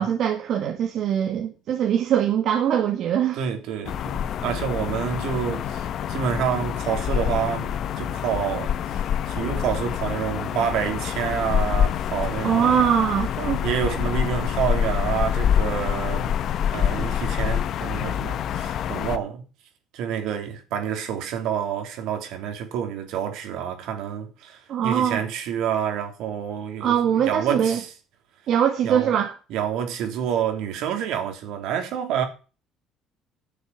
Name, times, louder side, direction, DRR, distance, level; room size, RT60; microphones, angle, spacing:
voice 1, 0.0-3.4 12.4-13.6 17.0-17.1 24.7-25.2 26.8-27.8 28.5-29.3, right 9 dB, 60° right, 1.9 m, -22 dB
voice 2, 3.3-12.9 13.6-16.3 16.7-19.4 19.9-26.9 27.2-27.9 28.8-29.1 29.5-32.3, right 8 dB, 80° right, 3.2 m, -28 dB
sound 1, 3.8-19.2, left 9 dB, 60° left, 0.9 m, -26 dB
10.0 x 7.2 x 7.1 m
cardioid pair, 110°, 0 cm